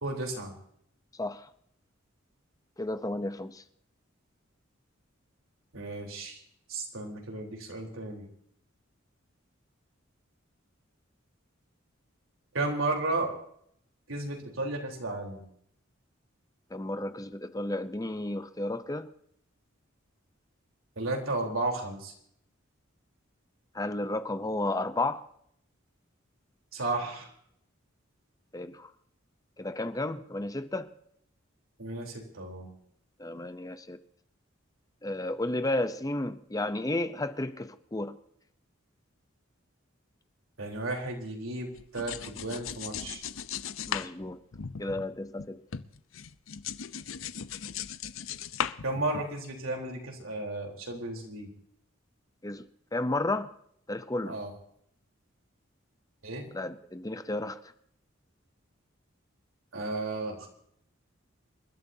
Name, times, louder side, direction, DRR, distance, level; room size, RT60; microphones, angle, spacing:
voice 1, 0.0-0.5 5.7-6.4 6.7-8.3 12.5-13.3 14.1-15.4 21.0-22.1 26.7-27.3 31.8-32.7 40.6-43.2 48.8-51.5 54.3-54.5 56.2-56.5 59.7-60.5, right 2 dB, 90° right, 3.8 m, -33 dB
voice 2, 1.1-1.5 2.8-3.6 16.7-19.1 23.7-25.2 28.5-28.9 29.6-30.9 33.2-34.0 35.0-38.2 43.9-44.4 44.8-45.6 52.4-52.7 52.9-53.5 53.9-54.4 56.5-57.6, left 2 dB, 15° left, 0.7 m, -32 dB
sound 1, 41.7-45.5 45.7-49.5, left 8 dB, 80° left, 0.7 m, -37 dB
27.5 x 12.5 x 2.8 m
head